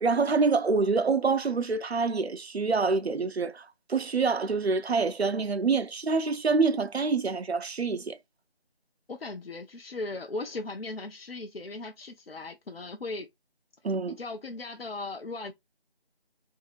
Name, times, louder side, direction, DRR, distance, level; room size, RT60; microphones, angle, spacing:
voice 1, 0.0-8.2 13.8-14.2, right 4 dB, 90° right, 0.6 m, -26 dB
voice 2, 9.1-13.3 14.2-15.5, left 2 dB, 70° left, 0.6 m, -37 dB
4.1 x 2.7 x 2.4 m
figure-of-eight pair, 180°, 31 cm